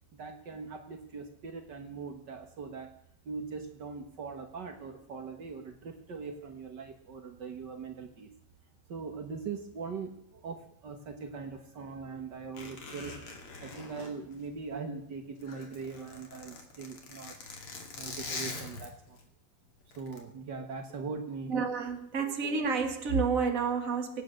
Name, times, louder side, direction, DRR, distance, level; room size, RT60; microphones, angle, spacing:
voice 1, 0.1-2.9 3.2-8.3 8.9-13.2 13.6-17.4 17.9-19.2 19.9-21.5, right 5 dB, 85° right, 5 dB, 0.9 m, -41 dB
Zipper (clothing), 12.5-15.0 15.3-19.2 19.9-20.2, left 3 dB, 40° left, 3.0 m, -43 dB
voice 2, 21.5-24.2, right 5 dB, 40° right, 5 dB, 1.1 m, -30 dB
24.5 x 9.0 x 6.5 m, 0.77 s
omnidirectional pair, 4.2 m